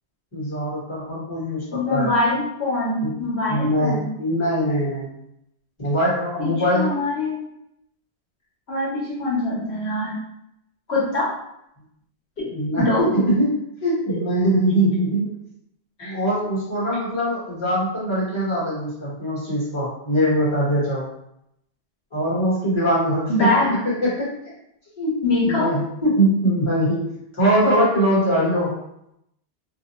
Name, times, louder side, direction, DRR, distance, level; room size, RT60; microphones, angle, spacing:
voice 1, 0.3-2.1 3.0-3.2 3.5-5.2 5.8-6.9 12.5-13.5 13.8-15.3 16.0-21.1 22.1-23.5 23.8-24.3 25.0-25.2 25.4-28.8, equal, 25° left, -8 dB, 1.2 m, -22 dB
voice 2, 1.7-4.1 6.4-7.4 8.7-10.2 10.9-11.4 12.4-12.5 12.8-13.1 14.1-14.2 16.0-16.2 23.3-23.8 25.2-25.7, left 2 dB, 75° left, -6 dB, 1.0 m, -23 dB
2.6 x 2.2 x 2.9 m, 0.78 s
omnidirectional pair, 1.1 m